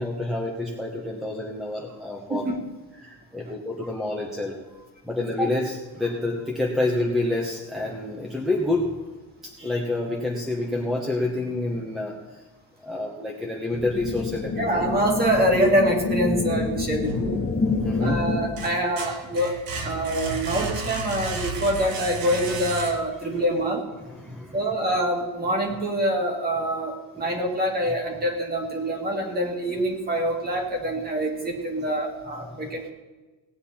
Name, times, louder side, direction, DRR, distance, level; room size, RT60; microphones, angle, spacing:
voice 1, 0.0-2.5 3.0-8.9 9.4-12.4 12.8-14.9 17.6-18.3 19.9-20.1 23.3-23.4 24.0-24.7 32.6-32.7, left 2 dB, ahead, -2 dB, 1.1 m, -28 dB
sound 1, 13.7-18.8, left 3 dB, 25° left, 1.0 m, -27 dB
voice 2, 14.6-17.4 18.0-19.5 19.8-23.9 24.5-32.9, right 1 dB, 25° right, 2 dB, 2.0 m, -25 dB
sound 2, 17.0-17.9 18.3-23.3, right 3 dB, 60° right, 1.7 m, -33 dB
18.0 x 9.0 x 4.3 m, 1.2 s
cardioid pair, 175°, 40 cm